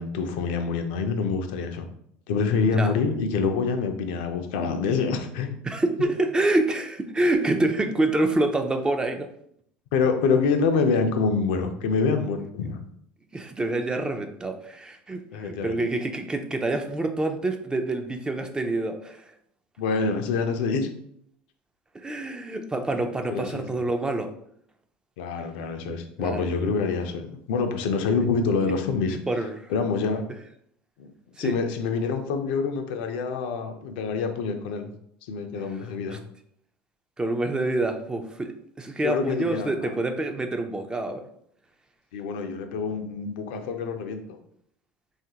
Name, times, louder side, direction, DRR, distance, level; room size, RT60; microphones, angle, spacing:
voice 1, 0.0-1.9 2.3-5.6 9.9-12.8 15.3-15.7 19.8-20.9 23.3-23.8 25.2-29.2 29.7-30.2 31.0-31.1 31.4-34.9 35.3-36.2 39.0-39.9 42.1-44.4, left 5 dB, 75° left, 6 dB, 0.4 m, -26 dB
voice 2, 5.6-9.3 13.3-19.3 21.9-24.3 26.2-26.5 28.2-28.3 29.3-29.7 31.4-31.5 36.1-36.2 37.2-41.2, right 2 dB, 15° right, 6 dB, 0.4 m, -27 dB
3.1 x 2.4 x 2.8 m, 0.70 s
hypercardioid pair, 85°, 5 cm